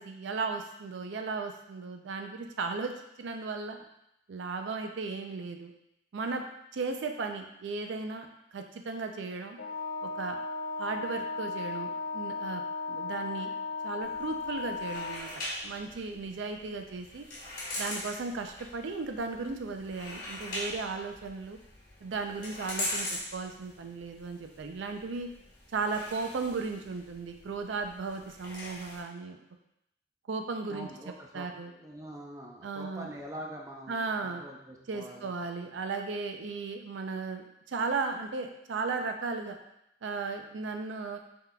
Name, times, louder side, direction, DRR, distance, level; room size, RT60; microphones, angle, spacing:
voice 1, 0.0-2.9 3.2-3.8 4.3-5.7 6.1-6.4 6.7-9.6 10.0-10.4 10.8-12.6 12.9-13.5 13.8-17.3 17.8-21.6 22.0-25.3 25.7-29.4 30.3-30.9 31.3-31.7 32.6-33.1 33.9-34.4 34.9-39.6 40.0-41.2, right 4 dB, 80° right, 5 dB, 0.4 m, -36 dB
Wind instrument woodwind instrument, 9.6-15.3, left 4 dB, 70° left, 0.5 m, -36 dB
sound 1, 14.0-29.0, left 1 dB, 45° left, 1.3 m, -42 dB
voice 2, 30.7-35.3, equal, 15° right, -1 dB, 0.5 m, -44 dB
5.7 x 3.6 x 2.2 m, 0.81 s
head